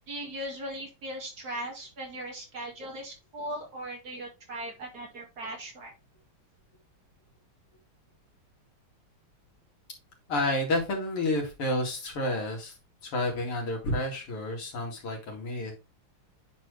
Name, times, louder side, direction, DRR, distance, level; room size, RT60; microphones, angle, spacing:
voice 1, 0.1-5.9, right 1 dB, 45° right, 1 dB, 2.8 m, -38 dB
voice 2, 10.3-12.7 13.0-15.7, left 1 dB, 85° left, 0 dB, 3.4 m, -30 dB
9.4 x 4.4 x 3.4 m, 0.27 s
omnidirectional pair, 2.4 m